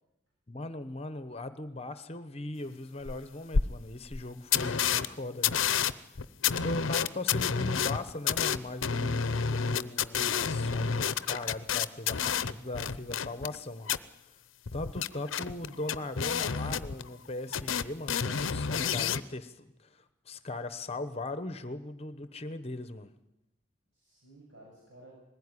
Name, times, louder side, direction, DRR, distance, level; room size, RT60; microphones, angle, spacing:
voice 1, 0.5-5.6 6.6-13.9 14.3-14.4 14.7-23.1, left 2 dB, 30° left, 12 dB, 1.0 m, -39 dB
sound 1, 3.0-3.1 3.5-3.6 4.1-4.2 4.5-5.1 5.4-13.6 13.9-14.0 14.7-17.3 17.5-19.2, left 7 dB, 80° left, 0.7 m, -29 dB
voice 2, 6.9-8.1 22.6-22.7 23.9-25.2, right 2 dB, 70° right, -3 dB, 6.9 m, -56 dB
20.0 x 16.0 x 9.8 m, 0.89 s
head